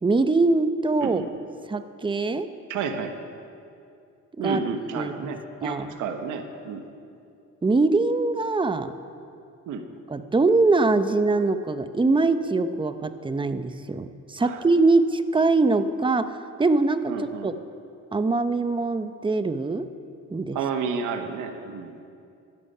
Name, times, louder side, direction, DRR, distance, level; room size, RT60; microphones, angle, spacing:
voice 1, 0.0-1.2 1.7-2.5 4.4-4.6 5.0-5.3 5.6-5.9 7.6-8.9 10.1-17.1 17.4-17.5 18.1-19.9 20.3-20.6, right 3 dB, 15° right, 10 dB, 0.8 m, -23 dB
voice 2, 1.0-1.3 2.7-3.1 4.4-6.8 9.7-9.9 14.4-14.6 17.1-17.5 20.5-22.0, right 5 dB, 85° right, 6 dB, 1.3 m, -31 dB
15.5 x 12.5 x 5.6 m, 2.5 s
cardioid pair, 90°, 30 cm